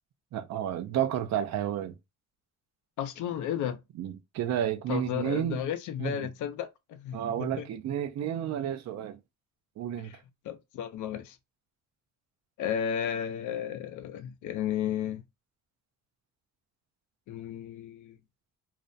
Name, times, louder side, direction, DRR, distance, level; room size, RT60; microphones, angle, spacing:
voice 1, 0.3-1.9 4.0-5.6 6.0-6.2 7.1-9.2 9.8-10.2, right 10 dB, 60° right, 0.5 m, -31 dB
voice 2, 3.0-3.8 4.9-7.6 10.0-10.2 10.4-11.4 12.6-15.2 17.3-18.1, left 9 dB, 80° left, 0.5 m, -33 dB
2.4 x 2.1 x 2.5 m
cardioid pair, 90°, 30 cm